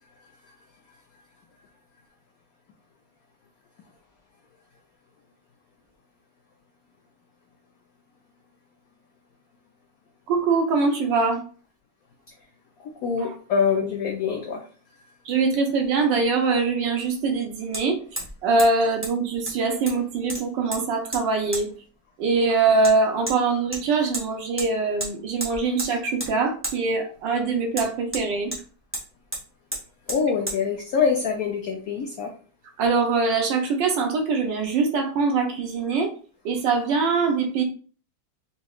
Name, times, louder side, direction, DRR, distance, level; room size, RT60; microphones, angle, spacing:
voice 1, 10.3-11.4 15.2-18.0 18.4-21.7 22.2-28.5 32.8-36.1 36.4-37.6, right 4 dB, 70° right, 4 dB, 1.3 m, -23 dB
voice 2, 12.8-14.7 14.9-15.1 30.1-32.3, left 6 dB, 80° left, 2 dB, 0.7 m, -25 dB
Hammer, 15.8-15.9 17.7-17.8 18.2-18.3 18.6-18.7 19.0-19.1 19.5-20.0 20.3-20.8 21.1-21.2 21.5-21.6 22.8-22.9 23.3-23.4 23.7-24.3 24.6-24.7 25.0-25.1 25.4-25.9 26.2-26.3 26.6-26.8 27.7-28.6 28.9-29.1 29.3-29.4 29.7-29.8 30.1-30.2 30.5-30.6, right 1 dB, 20° right, 0.3 m, -31 dB
4.2 x 2.8 x 2.3 m, 0.40 s
omnidirectional pair, 2.2 m